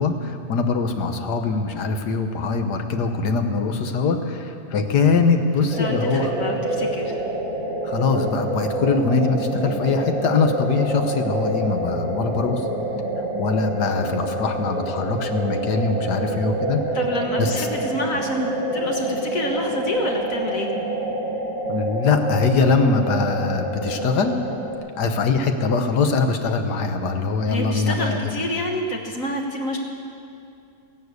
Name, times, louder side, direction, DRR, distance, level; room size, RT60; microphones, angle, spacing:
voice 1, 0.0-6.3 7.8-12.6 13.4-16.8 17.4-17.7 21.7-24.4 24.9-28.3, left 4 dB, 85° left, 6 dB, 1.7 m, -22 dB
voice 2, 5.6-7.2 13.8-14.0 16.9-20.7 27.5-29.8, left 1 dB, 55° left, 1 dB, 1.7 m, -28 dB
sound 1, 5.7-24.7, right 1 dB, 60° right, 2.2 m, -27 dB
14.5 x 11.5 x 8.2 m, 2.6 s
omnidirectional pair, 1.7 m